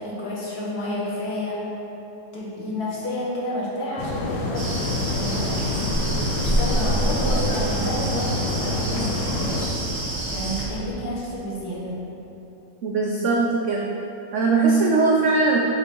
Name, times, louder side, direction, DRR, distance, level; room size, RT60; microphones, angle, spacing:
voice 1, 0.0-1.6 2.3-4.8 5.1-5.7 6.4-9.8 10.3-11.9, left 1 dB, 60° left, -6 dB, 1.8 m, -30 dB
sound 1, 4.0-9.7, left 1 dB, 80° left, 1.4 m, -27 dB
sound 2, 4.5-10.7, right 1 dB, 20° right, 1.0 m, -27 dB
voice 2, 12.8-14.0 14.3-15.6, right 3 dB, 85° right, -1 dB, 0.6 m, -20 dB
6.9 x 4.1 x 4.5 m, 3.0 s
omnidirectional pair, 1.9 m